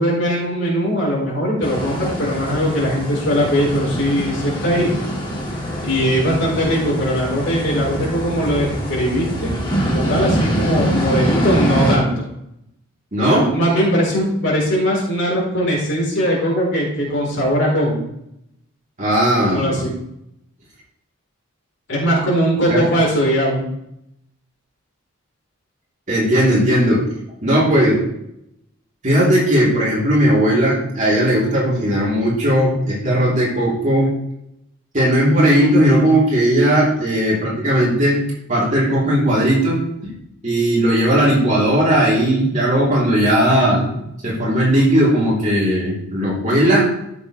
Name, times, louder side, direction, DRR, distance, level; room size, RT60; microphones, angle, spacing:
voice 1, 0.0-4.9 5.8-9.5 9.9-12.2 13.3-18.0 19.4-19.9 21.9-23.6, equal, 60° left, -4 dB, 3.9 m, -20 dB
sound 1, 1.6-12.0, equal, 20° left, 2.0 m, -24 dB
voice 2, 13.1-13.5 19.0-19.9 22.7-22.9 26.1-27.0 27.4-28.0 29.0-34.1 34.9-38.2 38.5-40.1 40.4-43.9 44.2-46.9, right 1 dB, 35° right, -5 dB, 3.2 m, -17 dB
13.0 x 7.0 x 3.2 m, 0.78 s
head